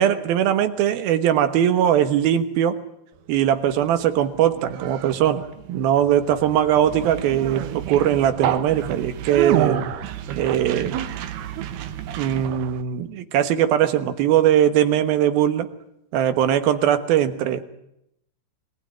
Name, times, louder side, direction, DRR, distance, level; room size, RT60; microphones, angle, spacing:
voice 1, 0.0-2.8 3.3-9.8 10.4-11.0 12.2-15.7 16.1-17.6, right 10 dB, 75° right, 10 dB, 3.1 m, -20 dB
Conversation, 3.3-12.8, right 11 dB, 90° right, 3.2 m, -29 dB
23.0 x 19.0 x 9.4 m, 0.80 s
omnidirectional pair, 4.4 m